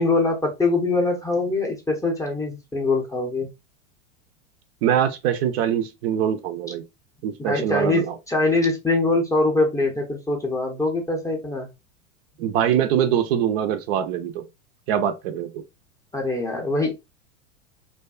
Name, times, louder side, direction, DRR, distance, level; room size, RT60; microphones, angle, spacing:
voice 1, 0.0-3.5 7.4-11.7 16.1-16.9, left 2 dB, 10° left, 0.5 m, -23 dB
voice 2, 4.8-6.8 7.2-8.1 12.4-14.5 14.9-15.6, right 9 dB, 55° right, 0.4 m, -23 dB
2.5 x 2.2 x 2.3 m
hypercardioid pair, 100°, 39 cm